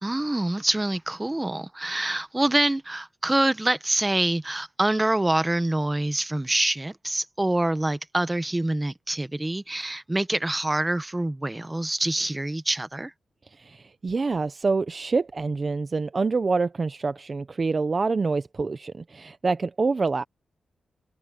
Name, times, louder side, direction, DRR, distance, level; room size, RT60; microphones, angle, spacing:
voice 1, 0.0-13.1, right 1 dB, 10° right, 1.0 m, -26 dB
voice 2, 13.6-20.2, right 4 dB, 30° right, 0.6 m, -26 dB
wide cardioid pair, 145°, 0 cm